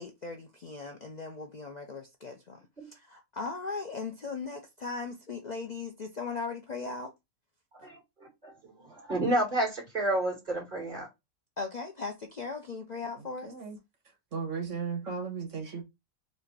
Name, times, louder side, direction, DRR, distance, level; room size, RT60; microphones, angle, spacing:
voice 1, 0.0-7.1 11.6-13.5, left 4 dB, 45° left, 0.6 m, -38 dB
voice 2, 8.8-11.1, right 1 dB, 40° right, 2.5 m, -30 dB
voice 3, 13.2-13.8 14.3-15.8, right 5 dB, 70° right, 1.7 m, -36 dB
4.1 x 2.6 x 4.5 m
omnidirectional pair, 1.3 m